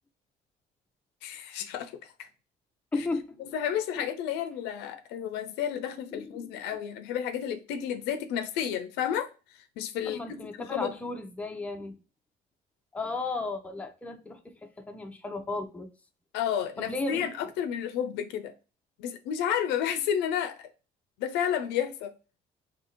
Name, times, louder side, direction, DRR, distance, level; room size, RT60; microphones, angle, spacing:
voice 1, 1.2-2.3 3.0-3.1 3.4-10.9 16.3-18.5 19.0-20.7 21.2-22.1, left 9 dB, 90° left, 0.5 m, -31 dB
voice 2, 2.9-3.5 3.9-4.0 6.1-6.5 10.1-12.0 12.9-15.9 16.8-17.3, left 3 dB, 10° left, 0.5 m, -35 dB
2.8 x 2.6 x 4.3 m
cardioid pair, 110°, 17 cm